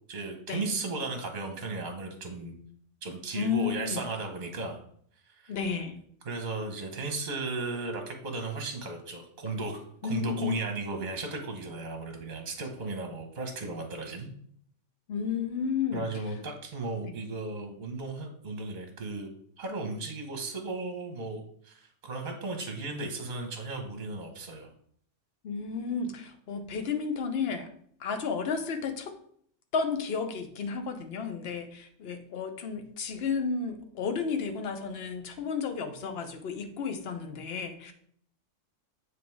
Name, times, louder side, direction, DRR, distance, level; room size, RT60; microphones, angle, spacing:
voice 1, 0.1-2.5 3.0-4.8 5.3-5.5 6.2-14.3 15.9-19.3 19.6-24.7, right 3 dB, 40° right, 4 dB, 1.0 m, -35 dB
voice 2, 3.3-4.0 5.5-6.0 10.0-10.6 15.1-16.2 17.0-17.1 25.4-27.7 28.0-29.1 29.7-37.9, left 6 dB, 55° left, 7 dB, 1.0 m, -32 dB
7.4 x 3.3 x 4.6 m, 0.63 s
omnidirectional pair, 1.3 m